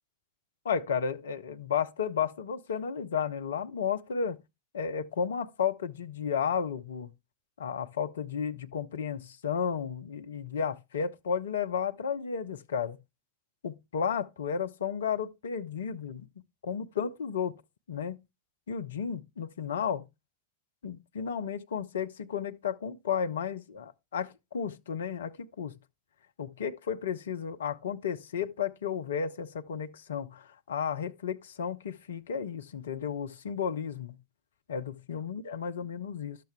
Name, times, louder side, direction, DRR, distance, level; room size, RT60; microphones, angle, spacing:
voice 1, 0.6-4.4 4.7-7.1 7.6-13.0 13.6-16.3 16.6-17.6 17.9-18.2 18.7-20.0 20.8-25.7 26.4-34.2 34.7-36.4, left 7 dB, 65° left, 0.6 m, -33 dB
11.5 x 6.7 x 3.4 m
figure-of-eight pair, 90°, 0 cm